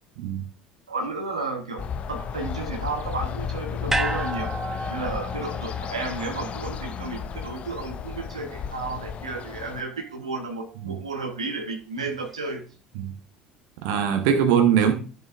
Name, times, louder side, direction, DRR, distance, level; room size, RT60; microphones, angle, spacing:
voice 1, 0.9-12.6, right 3 dB, 80° right, 1.2 m, -33 dB
sound 1, 1.8-9.8, left 7 dB, 40° left, 0.8 m, -33 dB
sound 2, 3.9-8.2 8.6-8.7, right 2 dB, 10° right, 1.0 m, -33 dB
voice 2, 13.8-14.9, right 8 dB, 60° right, 1.3 m, -21 dB
13.0 x 6.8 x 2.6 m
figure-of-eight pair, 65°, 3 cm